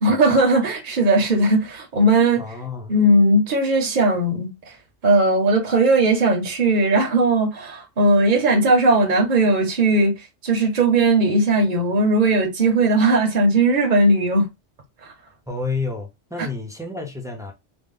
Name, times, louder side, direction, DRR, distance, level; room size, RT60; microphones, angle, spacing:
voice 1, 0.0-2.4 2.9-4.5 5.0-10.1 10.4-14.5, right 2 dB, 45° right, 1.0 m, -18 dB
voice 2, 2.4-2.9 15.5-17.5, left 3 dB, 5° right, 0.8 m, -30 dB
4.0 x 2.2 x 3.8 m
omnidirectional pair, 1.2 m